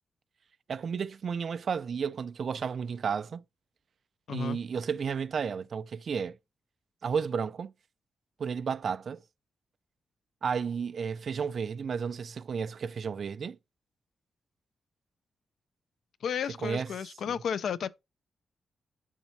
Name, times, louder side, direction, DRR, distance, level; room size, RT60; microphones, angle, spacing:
voice 1, 0.7-3.4 4.3-6.4 7.0-7.7 8.4-9.2 10.4-13.6 16.6-16.9 17.3-17.4, right 6 dB, 50° right, 0.3 m, -32 dB
voice 2, 4.3-4.6 16.2-17.9, left 8 dB, 70° left, 0.4 m, -33 dB
8.1 x 7.2 x 2.8 m
wide cardioid pair, 170°, 0 cm